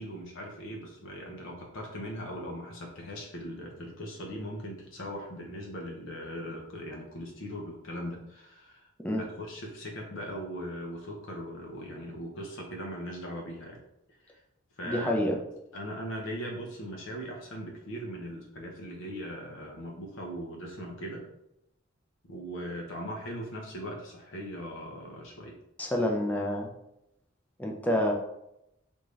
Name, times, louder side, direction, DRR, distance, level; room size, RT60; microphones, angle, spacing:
voice 1, 0.0-8.9 9.2-13.8 14.2-14.4 14.8-15.2 15.7-21.2 22.3-25.6, equal, 70° left, 0 dB, 0.7 m, -39 dB
voice 2, 14.8-15.4 25.8-26.7 27.6-28.1, left 1 dB, 10° left, 0 dB, 0.5 m, -28 dB
3.5 x 2.6 x 3.1 m, 0.83 s
head